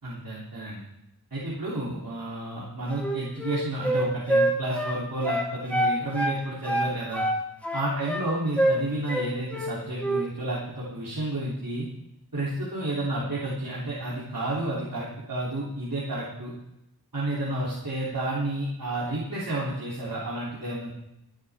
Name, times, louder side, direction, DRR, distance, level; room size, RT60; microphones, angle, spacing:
voice 1, 0.0-0.8 1.3-7.2 7.7-11.9 12.3-16.5 17.1-20.9, right 1 dB, 60° right, -7 dB, 3.4 m, -31 dB
Wind instrument woodwind instrument, 2.9-6.4 6.7-8.3 8.6-8.8 9.1-9.7 10.0-10.3, right 1 dB, 5° left, 2.5 m, -26 dB
26.0 x 9.2 x 3.6 m, 0.89 s
wide cardioid pair, 65°, 38 cm